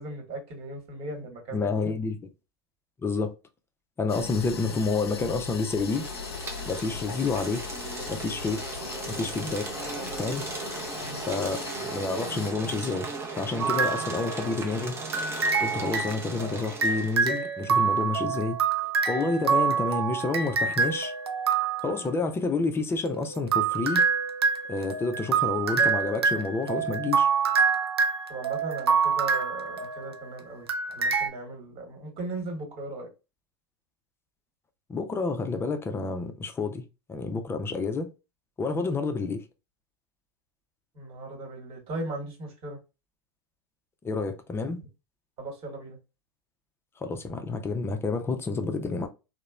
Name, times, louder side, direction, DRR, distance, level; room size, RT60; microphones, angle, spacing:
voice 1, 0.0-1.7 11.0-11.2 28.3-33.1 40.9-42.8 45.4-46.0, right 2 dB, 45° right, 1.3 m, -38 dB
voice 2, 1.5-2.2 3.0-3.3 4.0-6.1 6.7-7.6 8.1-8.6 9.1-9.7 10.2-10.4 11.3-15.0 15.3-18.6 19.1-21.1 21.8-24.0 24.7-27.3 34.9-36.8 37.1-38.1 38.6-39.4 44.0-44.8 47.0-49.1, left 4 dB, 20° left, 0.5 m, -29 dB
sound 1, 4.1-12.5, left 6 dB, 85° left, 0.4 m, -39 dB
sound 2, 5.8-17.4, right 3 dB, 20° right, 0.7 m, -37 dB
sound 3, 13.6-14.7 15.1-22.0 23.1-30.3 30.7-31.3, right 5 dB, 90° right, 0.4 m, -26 dB
2.9 x 2.1 x 2.3 m
hypercardioid pair, 90°, 13 cm